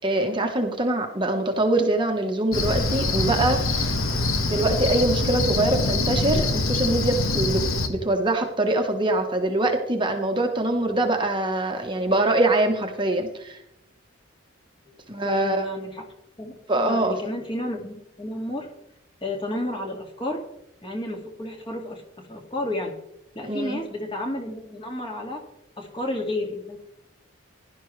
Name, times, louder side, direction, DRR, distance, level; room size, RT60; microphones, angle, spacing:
voice 1, 0.0-3.9 4.5-7.6 7.9-13.6 15.1-15.7 16.7-17.2 23.4-23.8, right 2 dB, 25° right, 3 dB, 1.1 m, -23 dB
Cricket, 2.5-7.9, left 2 dB, 85° left, 1.6 m, -24 dB
voice 2, 14.9-16.1 16.4-18.7 19.2-20.4 20.8-22.9 23.3-25.4 25.8-26.8, left 1 dB, 25° left, 1 dB, 2.1 m, -32 dB
16.5 x 11.5 x 3.3 m, 0.81 s
head